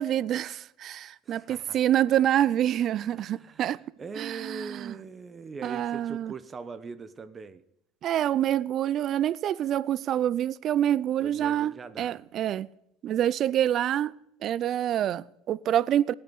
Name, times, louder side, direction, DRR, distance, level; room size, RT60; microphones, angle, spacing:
voice 1, 0.0-3.8 4.2-5.0 5.6-6.3 8.0-12.7 13.0-14.1 14.4-16.1, right 11 dB, 50° right, 0.5 m, -26 dB
voice 2, 1.2-1.8 3.1-7.6 11.2-12.2, right 5 dB, 30° right, 1.1 m, -41 dB
17.0 x 9.5 x 8.6 m
hypercardioid pair, 80°, 0 cm